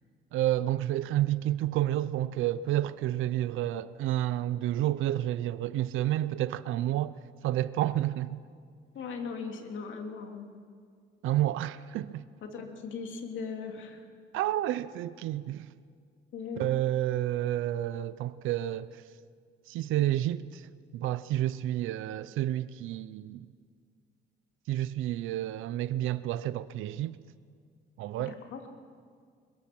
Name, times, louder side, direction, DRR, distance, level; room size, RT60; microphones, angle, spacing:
voice 1, 0.3-7.1 7.4-8.4 11.2-12.3 14.3-15.7 16.6-19.0 19.7-20.7 20.9-23.5 24.7-27.2 28.0-28.4, right 13 dB, 90° right, 0.6 m, -30 dB
voice 2, 8.9-10.5 12.4-14.0 16.3-16.7 28.2-28.7, left 5 dB, 75° left, 2.9 m, -39 dB
23.0 x 21.5 x 6.2 m
cardioid pair, 90°, 20 cm